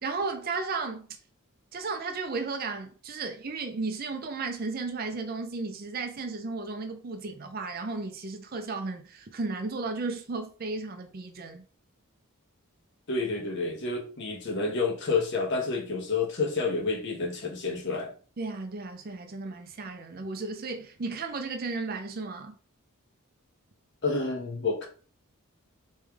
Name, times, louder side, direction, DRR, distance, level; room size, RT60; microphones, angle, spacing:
voice 1, 0.0-1.1 1.7-11.6 18.4-22.6, right 3 dB, 45° right, 0.5 m, -34 dB
voice 2, 13.1-18.1 24.0-24.9, left 4 dB, 55° left, 1.0 m, -29 dB
3.2 x 3.2 x 3.5 m
head